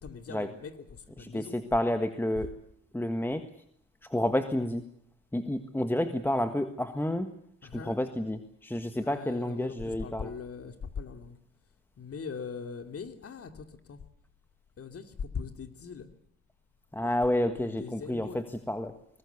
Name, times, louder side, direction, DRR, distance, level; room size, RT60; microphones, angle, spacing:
voice 1, 0.0-1.6 7.6-8.0 9.0-11.4 12.0-14.0 14.8-16.1 17.0-17.2 17.6-18.4, left 6 dB, 50° left, 8 dB, 2.7 m, -41 dB
voice 2, 1.2-2.5 2.9-3.5 4.1-4.8 5.3-7.3 7.7-10.3 16.9-18.9, left 1 dB, 5° left, 8 dB, 1.5 m, -30 dB
22.5 x 19.5 x 8.2 m, 0.66 s
cardioid pair, 90°, 30 cm